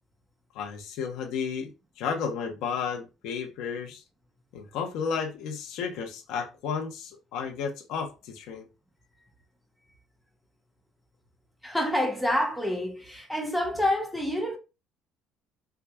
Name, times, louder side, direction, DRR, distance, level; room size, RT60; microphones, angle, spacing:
voice 1, 0.5-1.7 2.0-4.0 4.5-8.7, left 6 dB, 75° left, 0.8 m, -32 dB
voice 2, 11.6-14.6, left 1 dB, 5° left, 0.7 m, -27 dB
4.5 x 2.4 x 2.3 m
cardioid pair, 125°, 0 cm